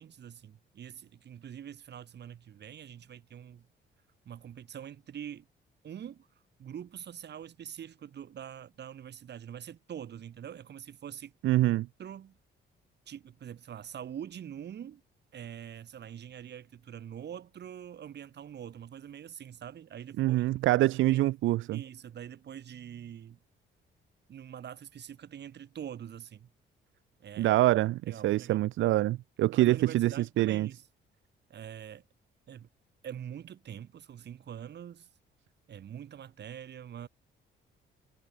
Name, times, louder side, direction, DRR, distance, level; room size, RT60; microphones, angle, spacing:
voice 1, 0.0-3.7 4.2-5.5 5.8-6.3 6.6-11.3 12.0-12.4 13.1-15.0 15.3-20.4 21.1-21.2 21.7-23.4 24.3-26.5 27.2-27.6 28.0-28.7 29.5-30.9 31.5-32.0 32.5-32.7 33.0-35.1 35.7-37.1, right 9 dB, 60° right, 2.6 m, -44 dB
voice 2, 11.4-11.9 20.2-21.8 27.4-30.7, right 16 dB, 75° right, 0.6 m, -25 dB
cardioid pair, 90°, 20 cm